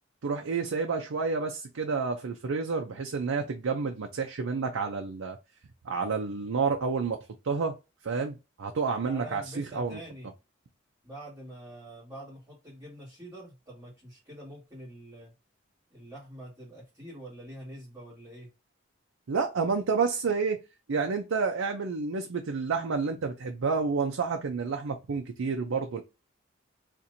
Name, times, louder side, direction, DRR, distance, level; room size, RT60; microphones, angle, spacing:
voice 1, 0.2-5.4 5.8-7.2 7.4-7.8 8.0-10.0 19.3-20.6 20.9-26.0, right 5 dB, 90° right, 0.5 m, -29 dB
voice 2, 9.0-10.3 11.0-15.3 15.9-18.5, right 1 dB, 20° right, 1.9 m, -45 dB
4.2 x 2.5 x 2.6 m
head